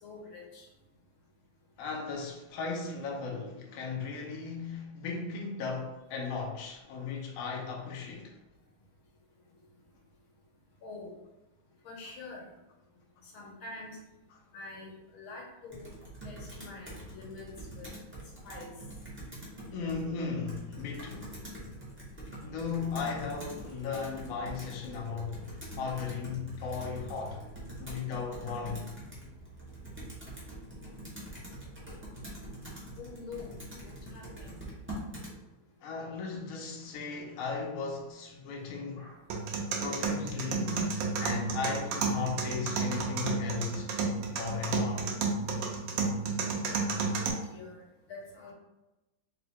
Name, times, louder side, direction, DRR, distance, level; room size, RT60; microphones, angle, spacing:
voice 1, 0.0-0.6 10.8-11.1 11.9-12.4 13.3-14.0 14.5-15.9 16.2-17.5 17.8-17.9 18.5-18.7 33.0-33.5 33.8-34.5 39.0-39.1 47.1-47.8 48.1-48.5, left 3 dB, 80° left, 1.8 m, -45 dB
voice 2, 1.8-8.3 19.7-21.3 22.4-27.4 27.8-29.0 35.8-39.1 39.8-43.9 44.3-45.1, left 5 dB, 65° left, 0.8 m, -36 dB
Computer keyboard, 15.7-35.4, right 1 dB, 20° right, 0.3 m, -44 dB
sound 1, 39.3-47.3, right 4 dB, 70° right, 1.3 m, -32 dB
4.0 x 2.3 x 4.3 m
omnidirectional pair, 2.3 m